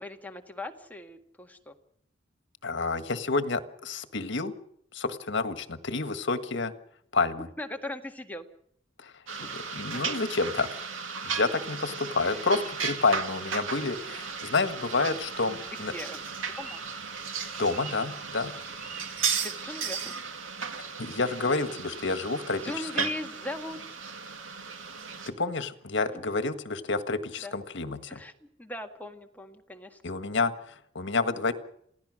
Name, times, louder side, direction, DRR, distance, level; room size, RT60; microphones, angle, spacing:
voice 1, 0.0-1.7 7.6-8.5 9.4-9.5 11.9-12.0 15.7-16.8 19.4-20.1 22.6-23.8 26.1-26.2 27.4-27.5 28.1-30.0, left 1 dB, 10° left, 4 dB, 1.8 m, -39 dB
voice 2, 2.6-4.5 4.9-6.7 7.1-7.5 9.0-9.1 9.4-10.7 11.2-15.9 17.6-18.5 21.0-22.6 23.0-23.1 25.3-28.2 30.0-31.5, left 3 dB, 65° left, 10 dB, 1.6 m, -29 dB
sound 1, 9.3-25.3, right 6 dB, 90° right, 2.2 m, -35 dB
sound 2, 12.2-19.3, right 3 dB, 45° right, 5.3 m, -50 dB
28.0 x 16.5 x 6.4 m, 0.69 s
head